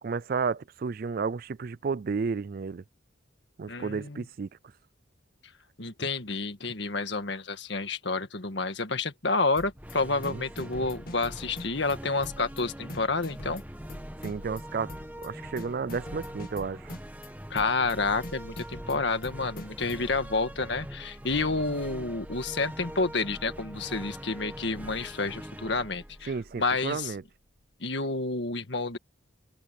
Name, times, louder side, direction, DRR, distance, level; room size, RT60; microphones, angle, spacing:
voice 1, 0.0-2.8 3.6-4.5 10.3-10.7 14.2-14.9 15.2-16.9 26.3-27.2, right 5 dB, 45° right, 0.4 m, -32 dB
voice 2, 3.7-4.2 5.8-13.6 17.5-26.3 26.6-27.1 27.8-29.0, left 3 dB, 65° left, 1.7 m, -29 dB
sound 1, 9.6-9.9 10.2-12.0 12.2-12.6 12.9-14.6 14.9-15.3 15.6-17.3 17.6-18.0 18.2-20.0, left 1 dB, 45° left, 2.0 m, -43 dB
sound 2, 9.7-27.2, equal, 10° right, 1.7 m, -43 dB
head